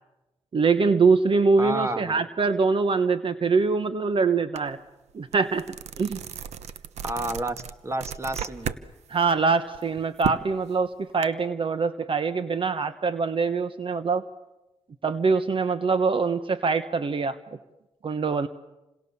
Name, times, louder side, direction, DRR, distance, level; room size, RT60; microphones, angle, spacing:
voice 1, 0.5-4.8 5.1-5.6 6.0-6.2 9.1-14.2 15.0-17.4 18.0-18.5, right 4 dB, 50° right, 11 dB, 1.2 m, -23 dB
voice 2, 1.6-2.3 7.0-8.8, right 1 dB, 25° right, 10 dB, 1.8 m, -31 dB
sound 1, 4.6-4.7 5.1-8.8 9.2-11.3, right 9 dB, 90° right, 1.0 m, -34 dB
29.0 x 26.5 x 7.1 m, 1.0 s
cardioid pair, 60°, 11 cm